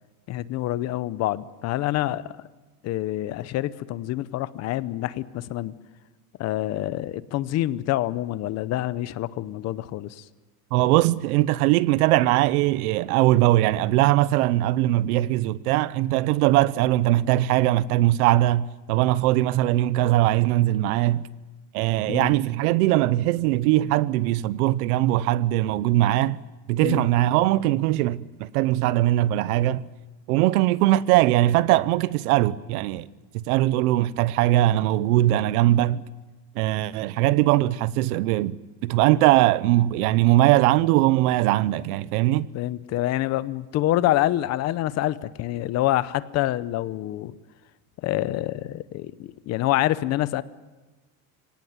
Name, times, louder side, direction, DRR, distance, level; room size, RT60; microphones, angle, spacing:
voice 1, 0.3-2.3 2.8-5.7 6.4-10.2 22.1-22.3 26.8-27.0 42.5-47.3 48.0-50.4, left 15 dB, 35° left, 0.7 m, -26 dB
voice 2, 10.7-21.2 21.7-26.4 26.7-29.8 30.3-33.1 33.3-36.0 36.6-42.5, right 15 dB, 90° right, 0.9 m, -21 dB
24.5 x 18.0 x 9.5 m
cardioid pair, 165°, 44 cm